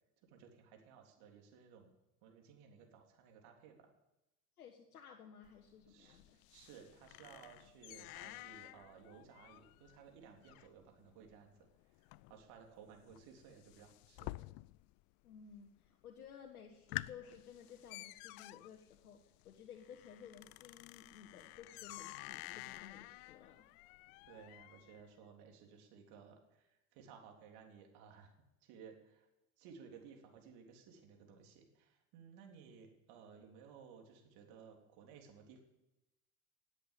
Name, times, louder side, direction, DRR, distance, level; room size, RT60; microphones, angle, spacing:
voice 1, 0.2-1.9 2.2-3.9 5.9-11.5 12.0-14.3 24.3-28.3 28.6-29.3 29.6-35.6, right 6 dB, 60° right, 2 dB, 3.6 m, -58 dB
voice 2, 4.6-6.2 15.2-19.2 19.4-23.6, left 7 dB, 85° left, 1 dB, 1.6 m, -55 dB
sound 1, 5.4-15.0 15.3-15.9 16.3-16.4 16.7-25.0, left 21 dB, 55° left, 0.5 m, -51 dB
17.5 x 8.0 x 8.5 m, 0.92 s
hypercardioid pair, 70°, 43 cm